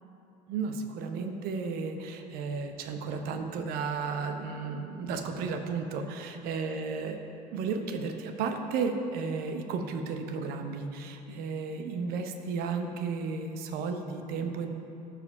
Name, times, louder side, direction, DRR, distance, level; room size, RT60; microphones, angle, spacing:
voice 1, 0.5-7.2 7.5-14.7, right 5 dB, 50° right, 6 dB, 0.8 m, -33 dB
12.0 x 5.1 x 5.0 m, 2.8 s
figure-of-eight pair, 65°, 20 cm